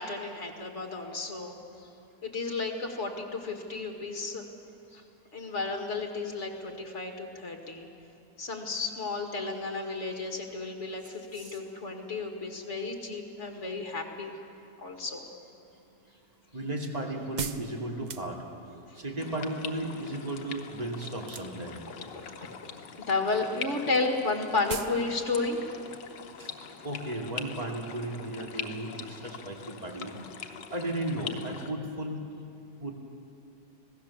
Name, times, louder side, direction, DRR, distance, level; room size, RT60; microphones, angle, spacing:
voice 1, 0.0-1.9 2.2-4.4 4.9-5.0 5.3-7.9 8.4-14.3 14.8-15.3 22.1-22.6 23.0-25.6, left 3 dB, 45° left, 3 dB, 2.3 m, -33 dB
voice 2, 11.0-11.6 16.5-18.4 18.9-21.8 26.4-26.5 26.8-30.2 30.7-32.2 32.8-32.9, right 1 dB, 20° right, 0 dB, 2.5 m, -35 dB
sound 1, 15.8-18.8 21.2-21.8 22.1-22.7 23.0-23.2 23.4-23.5 23.7-23.8 24.2-24.3 24.7-25.0 25.3-25.4, right 5 dB, 60° right, 0.4 m, -39 dB
sound 2, 19.2-31.7, left 7 dB, 85° left, 1.7 m, -43 dB
26.0 x 17.5 x 7.2 m, 2.6 s
omnidirectional pair, 1.8 m